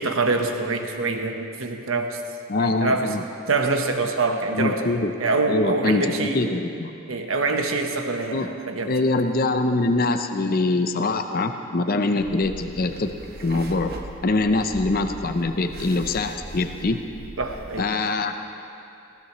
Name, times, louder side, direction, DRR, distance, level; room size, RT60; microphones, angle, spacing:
voice 1, 0.0-2.2 2.6-3.1 3.5-4.9 5.2-6.4 7.1-8.9 17.4-17.9, right 3 dB, 65° right, 4 dB, 1.1 m, -25 dB
voice 2, 2.5-3.2 4.5-5.1 5.5-6.9 8.3-8.5 8.9-13.1 13.4-13.9 14.2-17.0 17.8-18.5, left 2 dB, 45° left, 7 dB, 0.6 m, -23 dB
sound 1, 12.2-17.8, right 1 dB, 45° right, 1.1 m, -40 dB
19.0 x 16.0 x 3.1 m, 2.7 s
head